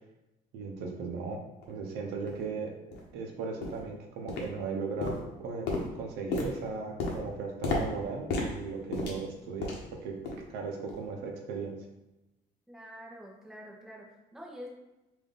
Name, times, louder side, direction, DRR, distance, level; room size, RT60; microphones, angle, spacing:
voice 1, 0.5-1.4 1.7-2.7 3.1-5.7 5.9-9.7 10.0-10.1 10.5-11.8, right 4 dB, 85° right, 1 dB, 0.7 m, -37 dB
sound 1, 1.6-1.7 2.3-2.4 2.9-3.1 3.6-3.9 4.3-4.7 5.0-9.9 10.2-10.5 10.9-11.1 11.6-11.7, left 3 dB, 80° left, 0.9 m, -35 dB
voice 2, 12.7-14.7, equal, ahead, -3 dB, 0.9 m, -46 dB
3.4 x 2.6 x 3.8 m, 0.97 s
cardioid pair, 110°, 17 cm